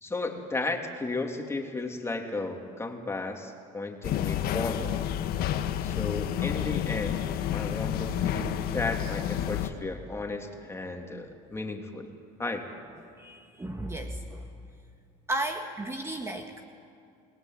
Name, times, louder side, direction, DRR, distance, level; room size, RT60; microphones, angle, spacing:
voice 1, 0.0-5.0 5.8-7.3 7.5-12.1 12.4-12.6, left 3 dB, 15° left, 3 dB, 3.1 m, -34 dB
sound 1, 4.0-9.7, left 10 dB, 65° left, 1.6 m, -30 dB
voice 2, 13.2-14.4 15.3-16.6, right 1 dB, 15° right, 4 dB, 1.9 m, -34 dB
29.0 x 19.5 x 9.3 m, 2.4 s
supercardioid pair, 105°, 17 cm